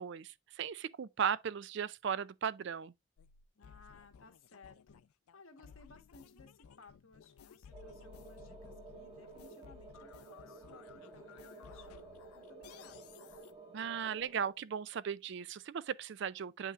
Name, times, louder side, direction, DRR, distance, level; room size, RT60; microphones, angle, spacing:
voice 1, 0.0-2.9 13.7-16.7, right 7 dB, 55° right, 0.3 m, -37 dB
sound 1, 3.2-13.5, left 7 dB, 90° left, 0.4 m, -57 dB
voice 2, 3.5-5.0 5.3-13.2, left 3 dB, 70° left, 1.3 m, -60 dB
sound 2, 7.7-14.5, right 3 dB, 20° right, 1.5 m, -53 dB
8.6 x 5.6 x 2.4 m
head